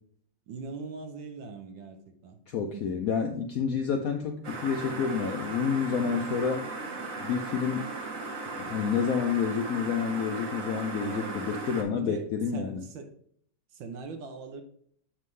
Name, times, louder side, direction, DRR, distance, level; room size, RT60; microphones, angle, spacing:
voice 1, 0.5-2.4 2.7-2.8 6.0-6.4 11.0-11.4 11.9-13.1 13.7-14.6, right 4 dB, 85° right, 5 dB, 1.5 m, -41 dB
voice 2, 2.5-6.6 7.2-7.9 8.6-12.9, left 6 dB, 70° left, 5 dB, 0.8 m, -29 dB
sound 1, 4.4-11.8, right 3 dB, 50° right, 1.4 m, -37 dB
7.4 x 5.4 x 3.2 m, 0.62 s
omnidirectional pair, 2.0 m